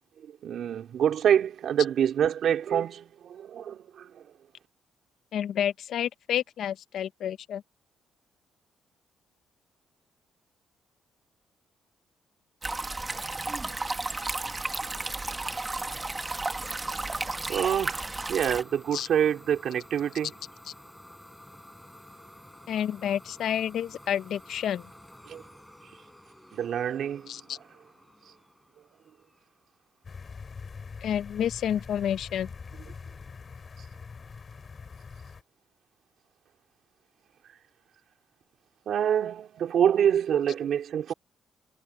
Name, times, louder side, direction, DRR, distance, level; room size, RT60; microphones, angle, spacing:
voice 1, 0.2-4.2 17.5-20.3 25.3-25.4 26.5-27.4 38.9-41.1, right 9 dB, 65° right, 3.1 m, -26 dB
voice 2, 5.3-7.6 18.9-19.1 22.7-24.9 27.3-27.6 31.0-32.5, left 9 dB, 70° left, 0.9 m, -29 dB
sound 1, 12.6-18.6, right 2 dB, 20° right, 1.8 m, -33 dB
Idling / Domestic sounds home sounds, 14.4-30.0, left 1 dB, 5° left, 7.3 m, -52 dB
sound 2, 30.0-35.4, left 5 dB, 40° left, 7.9 m, -43 dB
cardioid pair, 90°, 0 cm